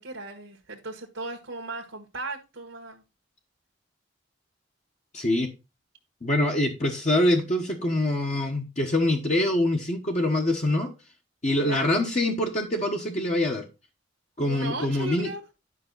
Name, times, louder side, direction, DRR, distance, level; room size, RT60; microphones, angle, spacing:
voice 1, 0.0-3.0 11.6-11.9 14.4-15.4, right 2 dB, 75° right, 1 dB, 1.4 m, -36 dB
voice 2, 5.1-5.5 6.2-10.9 11.4-13.7 14.4-15.3, left 1 dB, 35° left, 1 dB, 1.2 m, -24 dB
11.0 x 5.7 x 4.0 m, 0.26 s
head